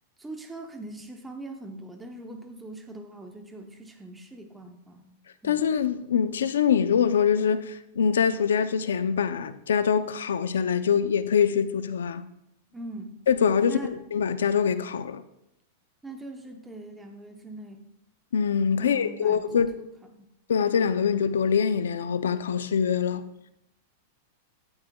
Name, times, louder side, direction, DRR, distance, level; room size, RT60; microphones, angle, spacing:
voice 1, 0.2-5.2 5.4-5.6 12.7-13.2 13.6-14.0 16.0-17.9 18.8-19.9 20.2-20.3, right 2 dB, 10° right, 0.9 m, -41 dB
voice 2, 5.4-12.2 13.3-15.2 18.3-19.8 20.5-23.2, left 7 dB, 90° left, 0.6 m, -24 dB
13.0 x 8.8 x 2.3 m
hypercardioid pair, 125°, 0 cm